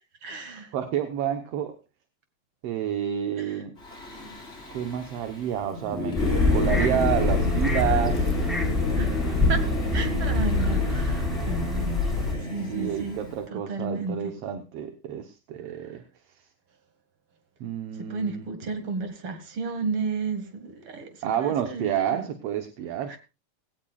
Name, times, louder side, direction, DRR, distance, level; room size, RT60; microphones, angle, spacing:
voice 1, 0.2-0.7 3.4-3.6 9.0-9.7 9.9-12.0 12.4-13.2 13.5-14.3 17.9-22.3 23.1-23.2, right 4 dB, 50° right, 2.7 m, -33 dB
voice 2, 0.7-1.7 2.6-3.7 4.7-8.3 9.1-10.4 12.7-16.0 17.6-18.4 21.2-23.2, right 9 dB, 65° right, 1.9 m, -29 dB
Singing / Musical instrument, 3.8-13.4, left 2 dB, 20° left, 4.8 m, -31 dB
sound 1, 6.1-12.3, left 2 dB, ahead, 3.9 m, -25 dB
18.0 x 17.0 x 2.4 m
omnidirectional pair, 3.3 m